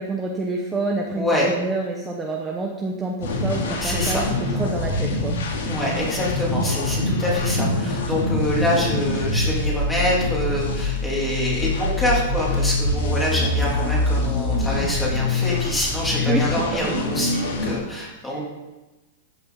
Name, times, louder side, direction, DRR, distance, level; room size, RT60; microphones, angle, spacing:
voice 1, 0.0-4.2 4.5-5.4 16.1-17.0 18.3-18.4, right 3 dB, 10° right, 0 dB, 0.9 m, -27 dB
voice 2, 1.1-1.5 3.8-4.2 5.6-18.4, left 1 dB, 5° left, -5 dB, 3.1 m, -25 dB
sound 1, 3.2-17.8, left 2 dB, 85° left, 3.1 m, -24 dB
13.5 x 8.6 x 4.0 m, 1.1 s
supercardioid pair, 165°, 0 cm